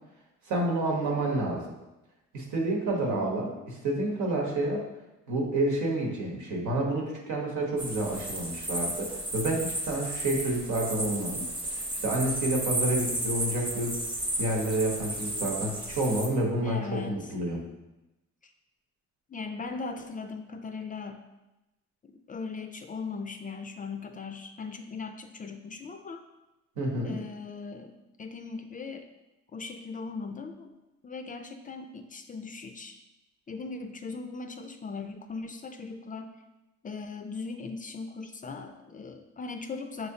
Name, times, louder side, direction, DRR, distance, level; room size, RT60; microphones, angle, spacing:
voice 1, 0.5-1.6 2.3-4.8 5.3-11.5 11.8-14.0 14.4-17.6 26.8-27.2, right 1 dB, 80° right, -1 dB, 1.2 m, -29 dB
voice 2, 2.9-3.6 16.6-17.3 18.4-18.5 19.3-21.2 22.0-26.2 27.0-29.1 29.5-30.7 31.0-33.0 33.5-36.4 36.8-40.1, left 4 dB, 30° left, 6 dB, 0.4 m, -39 dB
sound 1, 7.8-16.3, right 1 dB, 15° right, 0.8 m, -33 dB
5.7 x 3.1 x 2.8 m, 0.99 s
cardioid pair, 90°, 30 cm